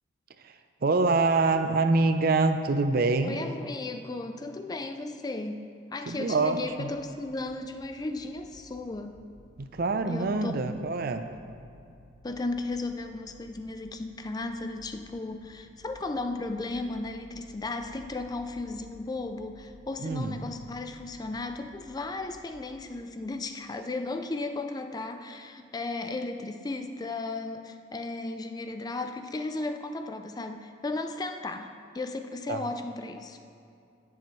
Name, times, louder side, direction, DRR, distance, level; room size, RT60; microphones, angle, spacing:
voice 1, 0.8-3.4 6.1-6.9 9.6-11.3 20.0-20.4 32.5-32.7, right 3 dB, 50° right, 8 dB, 0.5 m, -25 dB
voice 2, 3.2-5.7 5.9-9.2 10.1-10.7 12.2-33.4, left 2 dB, 20° left, 7 dB, 0.3 m, -35 dB
sound 1, 6.5-22.6, equal, 80° right, 1.2 m, -55 dB
17.0 x 7.0 x 3.1 m, 2.5 s
head